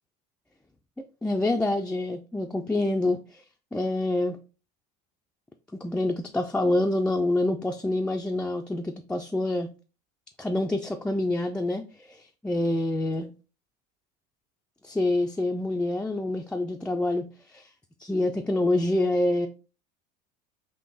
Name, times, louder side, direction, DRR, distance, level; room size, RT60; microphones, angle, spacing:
voice 1, 1.2-3.4 3.7-4.4 5.8-9.7 10.4-13.3 14.8-17.7 18.0-19.5, left 2 dB, 5° left, 3 dB, 0.3 m, -27 dB
3.8 x 2.6 x 3.8 m, 0.34 s
supercardioid pair, 105°, 21 cm